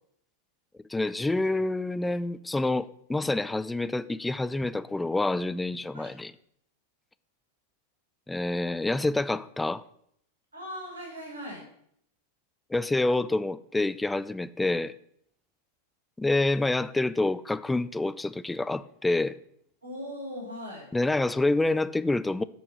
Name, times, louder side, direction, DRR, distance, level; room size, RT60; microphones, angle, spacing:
voice 1, 0.9-6.3 8.3-9.8 12.7-14.9 16.2-19.4 20.9-22.4, left 2 dB, 10° left, 0.3 m, -27 dB
voice 2, 10.5-11.6 19.8-20.9, equal, 85° right, 3.9 m, -39 dB
8.4 x 4.4 x 6.0 m
figure-of-eight pair, 95°, 0 cm